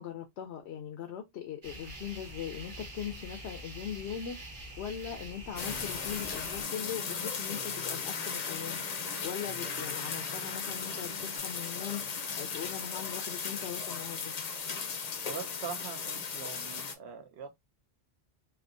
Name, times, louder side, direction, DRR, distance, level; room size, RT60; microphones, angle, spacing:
voice 1, 0.0-4.4 4.8-12.1 12.4-14.3, left 9 dB, 85° left, 0.9 m, -40 dB
sound 1, 1.6-6.6, right 1 dB, 50° right, 1.3 m, -45 dB
sound 2, 5.6-16.9, left 5 dB, 45° left, 0.6 m, -36 dB
sound 3, 5.6-11.4, right 2 dB, 20° right, 0.3 m, -50 dB
voice 2, 15.0-17.6, right 7 dB, 75° right, 1.0 m, -43 dB
3.4 x 2.7 x 2.4 m
omnidirectional pair, 1.1 m